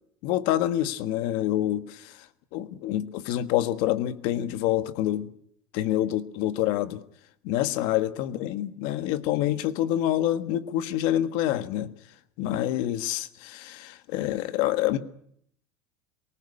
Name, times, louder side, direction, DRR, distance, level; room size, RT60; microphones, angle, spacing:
voice 1, 0.2-2.2 2.5-5.3 5.7-7.0 7.4-11.9 12.4-15.0, left 13 dB, 55° left, 1.5 m, -27 dB
24.0 x 19.0 x 9.9 m
cardioid pair, 180°, 9 cm